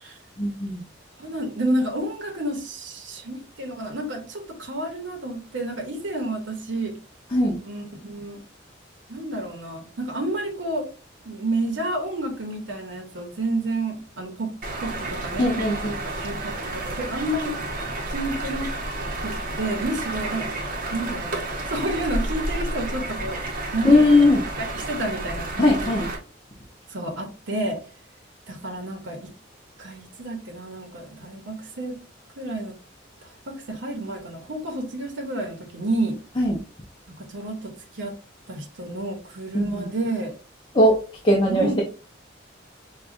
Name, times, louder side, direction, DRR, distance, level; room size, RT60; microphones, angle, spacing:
voice 1, 0.4-0.8 7.3-7.6 15.4-16.0 23.8-24.4 25.6-26.1 36.4-36.6 39.5-39.9 40.7-41.0 41.2-41.8, left 1 dB, 25° left, -2 dB, 0.6 m, -19 dB
voice 2, 1.2-6.9 7.6-8.4 9.1-10.9 11.2-14.5 14.8-15.7 16.1-17.5 18.1-18.7 19.2-20.5 20.9-21.4 21.7-23.4 23.7-24.3 24.6-26.0 26.9-27.8 28.5-29.3 29.8-31.9 32.4-32.8 33.5-36.2 37.3-38.1 38.5-40.3 41.5-41.8, right 1 dB, 75° right, 2 dB, 0.9 m, -30 dB
sound 1, 14.6-26.2, right 2 dB, 45° right, 0.8 m, -31 dB
5.0 x 2.3 x 2.5 m, 0.35 s
head